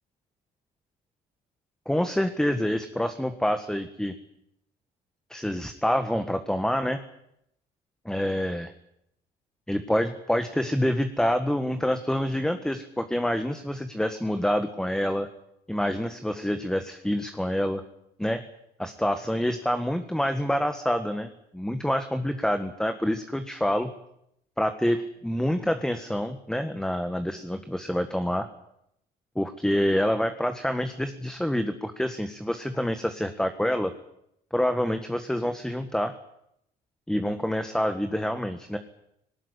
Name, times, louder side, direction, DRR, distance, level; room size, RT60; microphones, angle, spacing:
voice 1, 1.9-4.1 5.3-7.0 8.0-8.7 9.7-15.3 15.7-17.8 18.2-18.4 18.8-23.9 24.6-28.5 29.3-33.9 34.5-36.1 37.1-38.8, equal, 5° left, 8 dB, 1.6 m, -27 dB
19.0 x 19.0 x 9.9 m, 0.77 s
cardioid pair, 110°, 17 cm